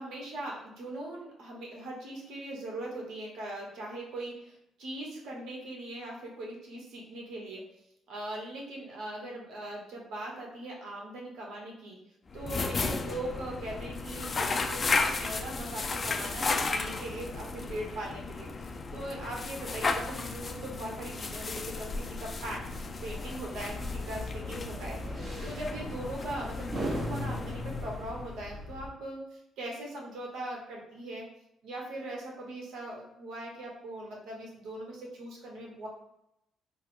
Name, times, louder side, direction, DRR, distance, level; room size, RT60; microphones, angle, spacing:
voice 1, 0.0-7.6 8.1-12.0 12.3-22.6 23.0-29.2 29.6-31.2 31.6-35.9, right 1 dB, 80° right, -1 dB, 1.0 m, -40 dB
sound 1, 12.3-28.4, left 3 dB, 35° left, 0.4 m, -34 dB
sound 2, 23.6-28.9, equal, 40° right, 0.8 m, -39 dB
4.3 x 2.1 x 3.6 m, 0.80 s
cardioid pair, 90°, 0 cm